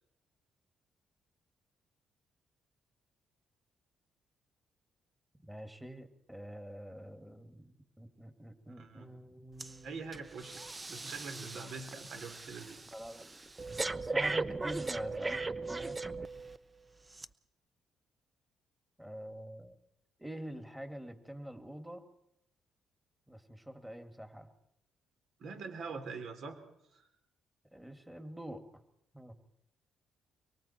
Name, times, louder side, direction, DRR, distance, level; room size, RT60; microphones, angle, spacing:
voice 1, 5.4-10.1 12.9-13.4 13.9-16.0 19.0-19.8 20.2-22.0 23.3-24.5 27.7-28.8 29.1-29.3, equal, 5° right, 6 dB, 2.5 m, -46 dB
voice 2, 8.7-9.1 9.8-10.6 10.9-12.8 25.4-26.6 26.9-27.1, right 4 dB, 65° right, 7 dB, 3.5 m, -44 dB
Breathing, 9.6-9.8 10.1-16.6 17.1-17.3, right 3 dB, 20° right, 0.8 m, -38 dB
24.0 x 23.5 x 4.5 m, 0.79 s
cardioid pair, 90°, 0 cm